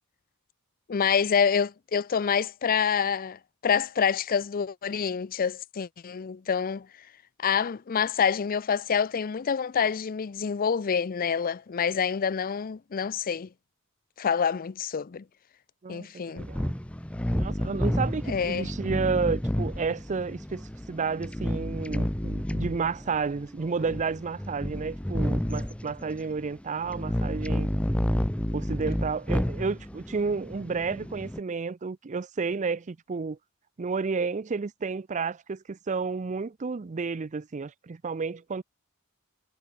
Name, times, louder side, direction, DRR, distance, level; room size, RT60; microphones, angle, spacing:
voice 1, 0.9-6.9 7.4-13.5 14.2-15.2 15.9-16.5 18.3-18.7, left 7 dB, 40° left, 0.5 m, -27 dB
voice 2, 15.8-16.7 17.3-27.7 28.5-33.4 33.8-38.6, right 5 dB, 35° right, 0.5 m, -31 dB
sound 1, 16.4-31.4, equal, 5° left, 0.8 m, -30 dB
head